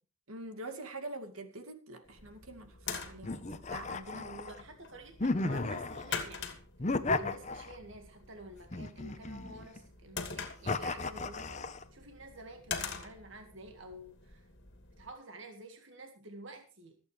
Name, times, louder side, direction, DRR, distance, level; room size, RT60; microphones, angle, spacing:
voice 1, 0.3-3.4 3.7-4.6, right 2 dB, 80° right, 6 dB, 2.3 m, -45 dB
sound 1, 2.1-15.1, left 5 dB, 55° left, 2.6 m, -45 dB
sound 2, 3.2-4.6 5.2-6.2 6.8-8.0 8.7-9.8 10.7-11.8, left 3 dB, 35° left, 0.9 m, -34 dB
voice 2, 4.5-6.6 7.2-14.5 15.0-17.0, right 1 dB, 55° right, 4 dB, 1.9 m, -50 dB
26.0 x 8.8 x 3.3 m, 0.33 s
head